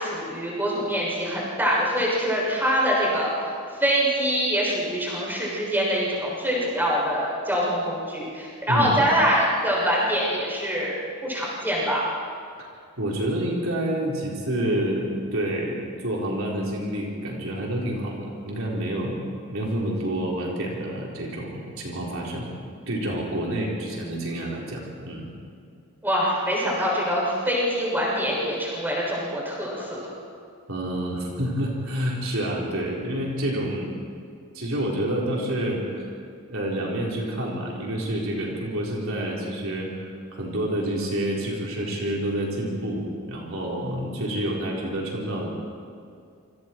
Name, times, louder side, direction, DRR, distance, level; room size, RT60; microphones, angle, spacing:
voice 1, 0.0-3.3 3.8-11.0 11.2-12.1 26.0-30.0, equal, 10° right, -5 dB, 6.6 m, -24 dB
voice 2, 13.0-19.2 19.5-22.5 22.9-25.3 29.8-30.1 30.7-33.9 34.5-36.1 36.5-45.5, right 1 dB, 65° right, -3 dB, 4.1 m, -28 dB
28.0 x 26.0 x 4.6 m, 2.4 s
head